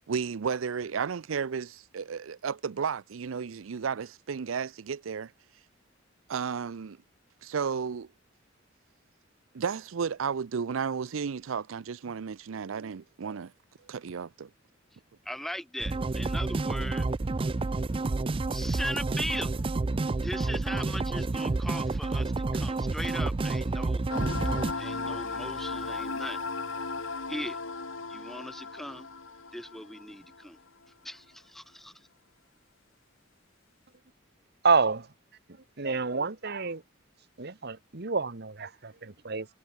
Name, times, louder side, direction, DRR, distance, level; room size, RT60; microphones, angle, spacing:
voice 1, 0.1-5.3 6.3-7.0 7.4-8.1 9.5-13.5 13.9-14.5, right 6 dB, 85° right, 0.5 m, -33 dB
voice 2, 15.2-17.1 18.5-19.5 20.2-24.0 24.8-26.4 27.3-27.6 28.1-29.1 29.5-30.6 31.0-32.1, equal, ahead, 0.9 m, -38 dB
sound 1, 15.8-24.7, right 3 dB, 25° right, 0.4 m, -29 dB
sound 2, 24.1-30.5, left 3 dB, 85° left, 3.2 m, -36 dB
voice 3, 34.6-35.1 35.8-36.8 37.4-39.5, right 4 dB, 55° right, 1.4 m, -28 dB
head